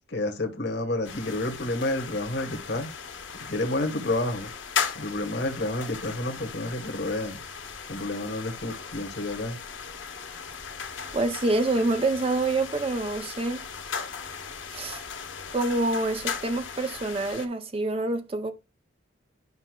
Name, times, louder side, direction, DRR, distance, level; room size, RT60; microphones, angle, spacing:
voice 1, 0.1-2.9 3.4-4.5 4.9-7.4 7.9-9.6, left 1 dB, 60° left, 1.2 m, -30 dB
sound 1, 1.0-17.5, left 6 dB, 85° left, 1.5 m, -37 dB
voice 2, 11.1-13.6 14.7-15.0 15.5-18.5, right 2 dB, 30° right, 0.4 m, -26 dB
11.0 x 5.4 x 2.3 m
head